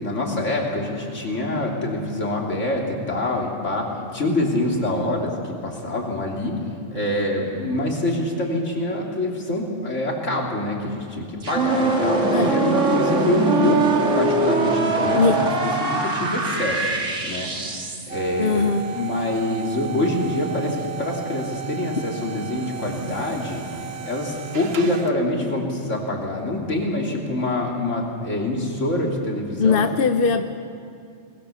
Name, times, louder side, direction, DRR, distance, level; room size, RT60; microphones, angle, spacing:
voice 1, 0.0-6.6 6.9-13.8 14.2-16.9 17.2-23.6 24.1-29.9, left 1 dB, 75° left, 0 dB, 3.2 m, -25 dB
sound 1, 11.4-18.1, right 3 dB, 80° right, 2.3 m, -22 dB
sound 2, 18.1-25.3, right 8 dB, 55° right, 1.2 m, -35 dB
voice 2, 18.4-18.9 29.6-30.4, left 5 dB, 55° left, 8 dB, 0.9 m, -20 dB
22.5 x 20.5 x 7.0 m, 2.4 s
omnidirectional pair, 1.3 m